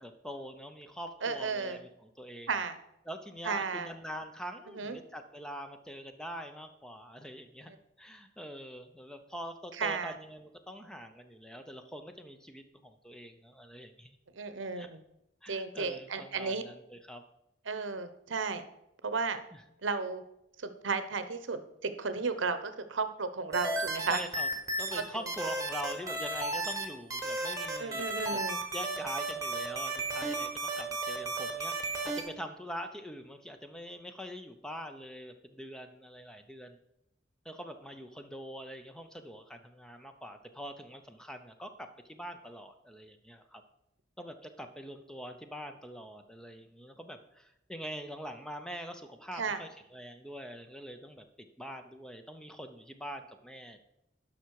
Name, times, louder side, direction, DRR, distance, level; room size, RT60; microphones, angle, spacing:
voice 1, 0.0-2.6 3.1-7.7 8.0-14.2 14.7-14.9 15.4-17.2 19.5-19.6 24.1-24.5 24.8-28.4 28.7-36.8 37.4-43.6 44.2-51.2 51.6-53.8, equal, 5° left, 6 dB, 0.6 m, -44 dB
voice 2, 1.2-1.8 2.5-2.8 3.4-3.9 4.7-5.0 9.8-10.1 14.3-15.0 15.5-16.6 17.7-18.6 19.0-19.4 19.8-20.2 20.6-24.2 24.9-25.0 27.8-28.6 49.4-49.6, right 4 dB, 80° right, 11 dB, 0.8 m, -33 dB
sound 1, 23.5-25.0 25.3-26.8 27.1-32.2, right 2 dB, 15° right, 1.2 m, -34 dB
11.0 x 5.9 x 4.7 m, 0.83 s
head